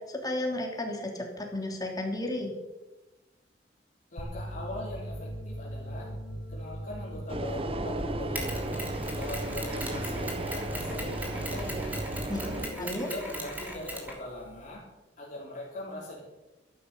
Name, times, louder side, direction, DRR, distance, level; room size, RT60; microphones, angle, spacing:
voice 1, 0.0-2.5 12.3-12.4 12.8-13.1, left 1 dB, 20° left, 1 dB, 3.2 m, -33 dB
voice 2, 4.1-6.1 6.5-8.9 9.1-11.9 12.6-14.8 15.2-16.2, left 1 dB, 45° left, -5 dB, 4.0 m, -41 dB
sound 1, 4.2-13.2, equal, 85° left, 2.1 m, -39 dB
sound 2, 7.3-12.7, right 2 dB, 30° right, 1.2 m, -35 dB
Mechanisms, 8.3-14.7, equal, 10° right, 3.1 m, -40 dB
13.5 x 12.0 x 7.0 m, 1.1 s
head